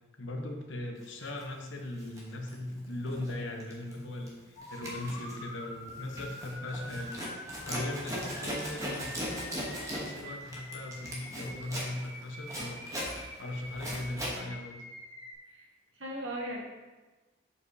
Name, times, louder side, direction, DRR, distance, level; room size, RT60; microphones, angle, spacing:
voice 1, 0.2-7.2 7.7-12.8 13.4-14.8, left 1 dB, 75° left, 2 dB, 0.9 m, -39 dB
Zipper (clothing), 1.3-1.4 1.9-3.4 3.6-3.9 4.3-14.4, equal, 15° right, 1.0 m, -39 dB
sound 1, 4.6-15.3, left 1 dB, 55° left, 1.8 m, -46 dB
voice 2, 15.9-16.6, right 1 dB, 90° right, -2 dB, 1.5 m, -37 dB
6.9 x 5.1 x 2.7 m, 1.2 s
head